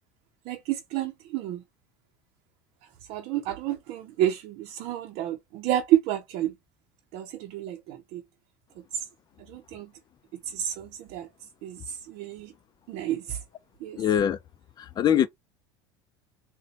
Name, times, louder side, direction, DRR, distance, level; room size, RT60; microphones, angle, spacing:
voice 1, 0.5-1.6 3.1-6.5 7.1-8.2 8.9-9.1 9.4-9.9 10.4-11.3 11.6-12.5 12.9-13.4 13.8-14.0, right 12 dB, 60° right, 0.6 m, -30 dB
voice 2, 14.0-14.4 14.8-15.3, left 9 dB, 35° left, 0.5 m, -23 dB
3.9 x 2.2 x 2.8 m
supercardioid pair, 100°, 13 cm